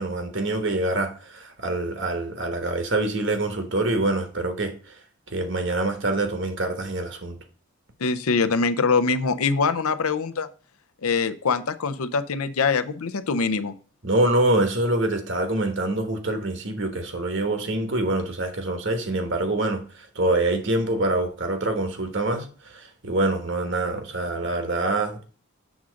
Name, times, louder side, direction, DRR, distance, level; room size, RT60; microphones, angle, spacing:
voice 1, 0.0-4.7 5.3-7.4 14.0-19.8 20.1-25.2, right 2 dB, 55° right, 1.3 m, -25 dB
voice 2, 8.0-10.5 11.0-13.7, left 4 dB, 85° left, 0.6 m, -23 dB
7.2 x 3.7 x 6.3 m
head